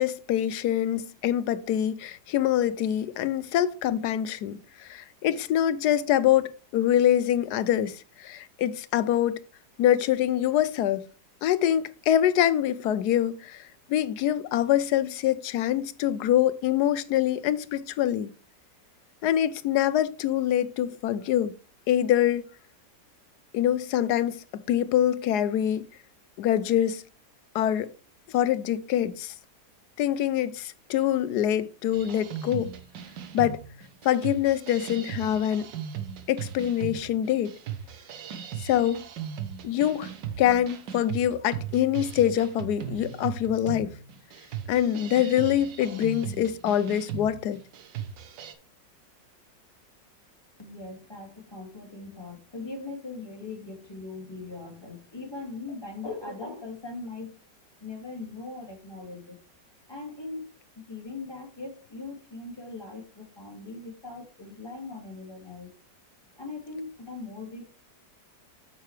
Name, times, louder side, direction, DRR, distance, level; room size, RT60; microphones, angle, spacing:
voice 1, 0.0-9.4 9.8-11.0 11.4-18.3 19.2-21.5 21.9-22.4 23.5-25.9 26.4-27.0 27.5-27.9 28.3-29.3 30.0-32.7 33.3-33.6 34.0-35.7 36.3-37.5 38.6-39.0 39.6-40.1 40.4-43.9 44.7-47.6, left 11 dB, 70° left, 1.1 m, -25 dB
sound 1, 31.9-48.5, right 9 dB, 80° right, 1.7 m, -38 dB
voice 2, 50.6-57.3 57.8-59.4 59.9-65.7 66.4-67.7, left 3 dB, 15° left, 2.3 m, -40 dB
9.0 x 6.9 x 3.3 m
omnidirectional pair, 1.9 m